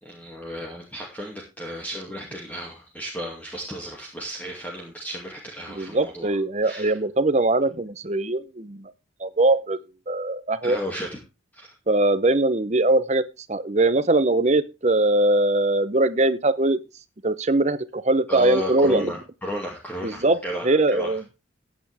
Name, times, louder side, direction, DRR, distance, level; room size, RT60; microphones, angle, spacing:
voice 1, 0.0-6.4 6.6-7.0 10.6-11.2 11.5-11.7 18.3-21.2, equal, 10° left, -2 dB, 2.3 m, -34 dB
voice 2, 5.7-8.9 9.2-9.8 10.1-10.8 11.9-13.2 13.5-16.8 17.2-19.1 20.0-20.4 20.6-21.2, right 2 dB, 35° right, 14 dB, 0.8 m, -21 dB
14.5 x 8.9 x 3.5 m, 0.28 s
head